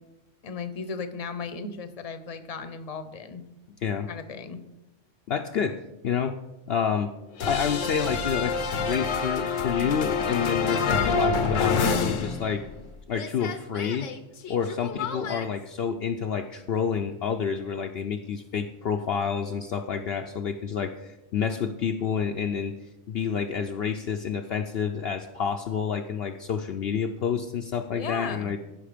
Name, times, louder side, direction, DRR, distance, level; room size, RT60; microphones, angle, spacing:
voice 1, 0.4-3.4 4.1-4.6 27.9-28.5, left 5 dB, 35° left, 10 dB, 0.8 m, -36 dB
voice 2, 5.3-5.8 6.0-6.4 6.7-7.1 7.4-12.6 13.1-14.1 14.5-22.7 23.1-28.6, left 7 dB, 60° left, 5 dB, 0.8 m, -29 dB
sound 1, 7.4-12.9 13.1-15.5, left 5 dB, 85° left, 1.2 m, -27 dB
15.0 x 5.8 x 5.1 m, 0.98 s
omnidirectional pair, 1.3 m